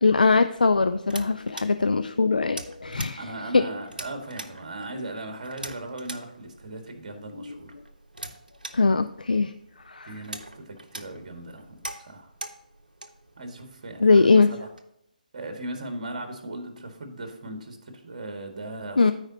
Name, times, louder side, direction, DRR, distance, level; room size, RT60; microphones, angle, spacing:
voice 1, 0.0-3.2 3.5-3.6 7.4-7.6 8.7-9.5 9.9-10.1 14.0-14.5 19.0-19.1, left 4 dB, 75° left, 10 dB, 0.4 m, -21 dB
sound 1, 0.5-14.8, right 2 dB, 80° right, 0.9 m, -44 dB
voice 2, 2.8-7.8 10.0-12.3 13.4-14.7 15.3-19.1, right 1 dB, 50° right, 5 dB, 1.7 m, -38 dB
14.0 x 4.8 x 2.8 m, 0.79 s
figure-of-eight pair, 140°, 5 cm